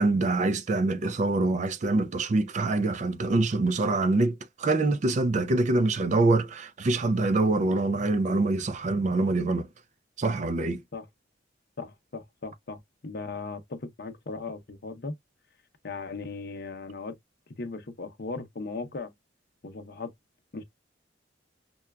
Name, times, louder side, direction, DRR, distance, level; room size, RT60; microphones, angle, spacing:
voice 1, 0.0-9.7 10.2-10.8, right 2 dB, 40° right, 0.4 m, -25 dB
voice 2, 11.8-15.1 15.8-17.1 17.6-19.1 19.6-20.1 20.5-20.6, left 3 dB, 55° left, 0.7 m, -37 dB
5.5 x 2.3 x 2.2 m
head